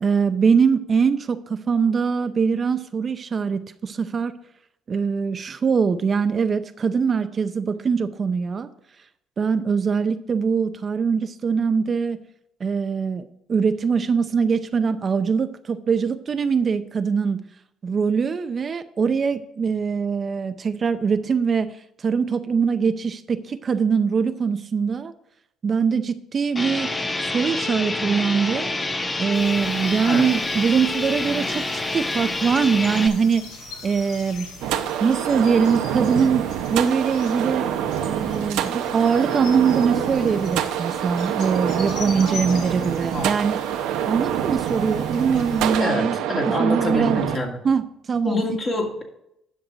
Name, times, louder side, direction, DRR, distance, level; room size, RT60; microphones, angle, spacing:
voice 1, 0.0-4.3 4.9-8.7 9.4-12.2 12.6-17.4 17.8-21.7 22.0-25.1 25.6-26.9 27.2-28.7 29.2-31.7 31.9-33.5 33.8-34.5 35.0-36.4 36.7-37.7 38.0-43.6 44.0-46.2 46.5-47.2 47.6-48.4, right 6 dB, 40° right, 10 dB, 0.6 m, -22 dB
sound 1, 26.6-33.1, left 2 dB, 20° left, 1.0 m, -27 dB
sound 2, 29.3-45.8, left 3 dB, 80° left, 2.5 m, -41 dB
sound 3, 34.6-47.4, right 10 dB, 85° right, 0.8 m, -26 dB
voice 2, 43.1-43.5 45.8-47.6 48.2-49.0, left 2 dB, 40° left, 1 dB, 2.4 m, -26 dB
10.5 x 6.1 x 5.0 m, 0.78 s
cardioid pair, 85°, 0 cm